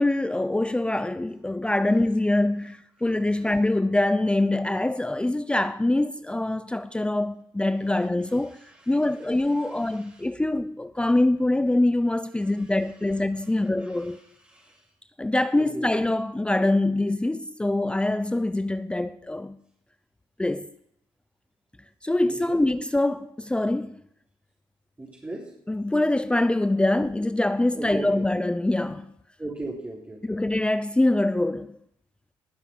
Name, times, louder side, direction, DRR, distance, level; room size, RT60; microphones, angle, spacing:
voice 1, 0.0-8.6 8.9-14.2 15.2-19.6 20.4-20.7 22.0-24.0 25.7-29.1 30.2-31.8, left 2 dB, 10° left, 0.6 m, -24 dB
voice 2, 8.5-10.3 12.4-12.7 13.6-14.8 15.6-15.9 22.2-22.7 25.0-25.5 27.7-28.2 29.4-30.4, right 2 dB, 20° right, 3.9 m, -39 dB
20.0 x 7.4 x 5.3 m
supercardioid pair, 65°, 10 cm